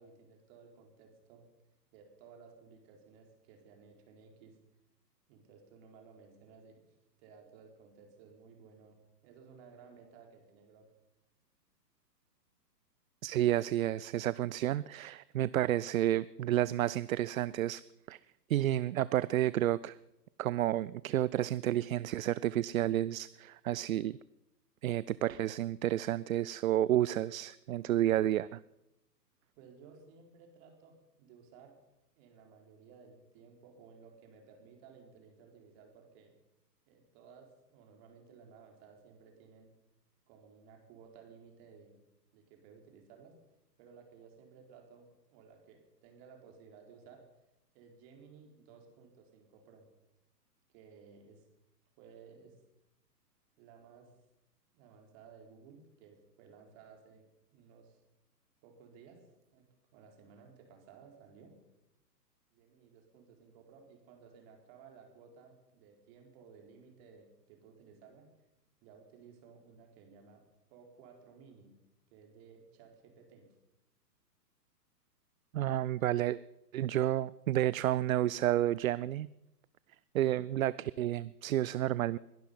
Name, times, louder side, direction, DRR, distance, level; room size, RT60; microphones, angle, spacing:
voice 1, 0.0-1.4 1.9-4.6 5.3-6.8 7.2-10.9 29.6-31.7 32.2-36.3 36.9-39.7 40.3-42.0 42.3-43.3 43.8-47.2 47.7-49.9 50.7-51.4 52.0-52.6 53.6-54.1 54.7-57.3 57.5-58.0 58.6-59.3 59.5-59.7 59.9-61.6 62.5-68.3 68.8-70.5 70.7-71.7 72.1-73.5, right 5 dB, 35° right, 2 dB, 4.4 m, -57 dB
voice 2, 13.2-17.8 18.1-18.2 18.5-20.0 20.4-24.2 24.8-28.6 75.5-76.4 76.7-79.3 80.1-82.2, right 13 dB, 55° right, 19 dB, 0.5 m, -30 dB
21.5 x 11.5 x 5.6 m, 0.88 s
hypercardioid pair, 125°, 50 cm